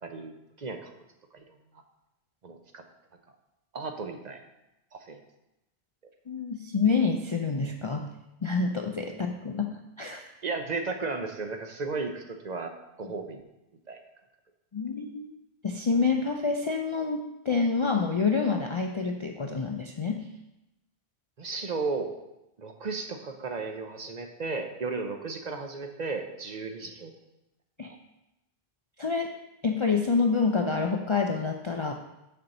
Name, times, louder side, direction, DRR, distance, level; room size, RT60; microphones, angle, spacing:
voice 1, 0.0-0.9 1.3-1.6 2.4-2.8 3.7-4.4 4.9-5.2 10.4-12.7 13.0-13.4 13.9-14.0 21.4-22.1 22.6-27.1 27.8-28.0, right 4 dB, 45° right, 5 dB, 0.7 m, -34 dB
voice 2, 6.3-8.1 8.4-10.3 14.7-15.3 15.6-20.3 27.8-27.9 29.0-29.3 29.6-31.9, left 4 dB, 45° left, 3 dB, 0.4 m, -27 dB
6.8 x 4.4 x 6.5 m, 0.93 s
omnidirectional pair, 1.1 m